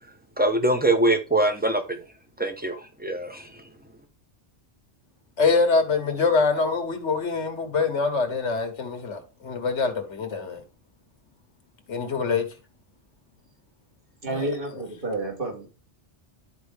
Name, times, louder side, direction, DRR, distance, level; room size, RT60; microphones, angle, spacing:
voice 1, 0.4-2.0 2.4-3.5, right 1 dB, 10° right, 0.9 m, -23 dB
voice 2, 5.4-10.6 11.9-12.4 14.3-14.5, left 4 dB, 85° left, 1.6 m, -24 dB
voice 3, 14.2-15.7, right 2 dB, 50° right, 2.5 m, -30 dB
11.0 x 4.7 x 3.5 m
omnidirectional pair, 1.2 m